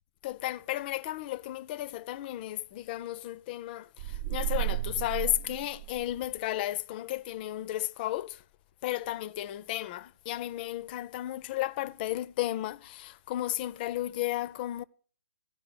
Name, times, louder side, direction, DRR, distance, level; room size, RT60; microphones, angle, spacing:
voice 1, 0.2-8.4 8.8-14.8, left 15 dB, 30° left, 0.4 m, -34 dB
sound 1, 4.0-6.4, right 15 dB, 45° right, 0.5 m, -33 dB
15.5 x 5.5 x 7.0 m
hypercardioid pair, 135°, 9 cm